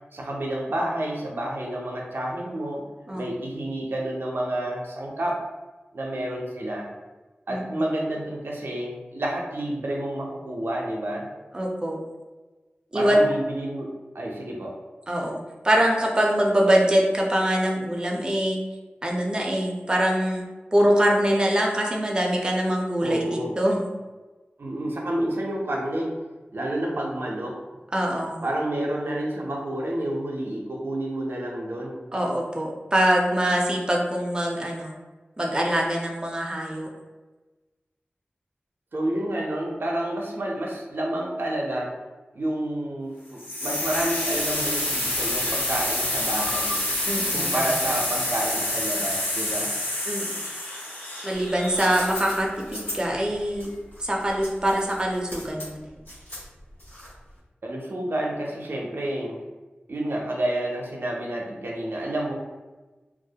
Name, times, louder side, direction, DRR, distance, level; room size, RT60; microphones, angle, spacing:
voice 1, 0.1-2.8 3.1-5.4 5.9-6.9 7.5-11.3 12.9-14.7 23.0-23.6 24.6-26.1 26.5-27.6 28.4-32.1 38.9-41.9 42.3-46.8 47.3-49.7 57.6-59.4 59.9-62.3, right 1 dB, 75° right, -2 dB, 0.5 m, -29 dB
voice 2, 7.5-7.8 11.5-12.0 12.9-13.2 15.1-15.4 15.6-18.6 19.0-20.5 20.7-23.9 27.9-28.4 32.1-35.0 35.4-36.9 47.1-47.7 50.1-50.4 51.2-53.7 54.0-56.0, equal, 20° right, -1 dB, 0.4 m, -24 dB
sound 1, 43.4-52.3, left 1 dB, 55° left, 0.7 m, -27 dB
sound 2, 51.3-57.3, left 1 dB, 75° left, 1.2 m, -37 dB
2.3 x 2.0 x 2.7 m, 1.2 s
wide cardioid pair, 65°, 4 cm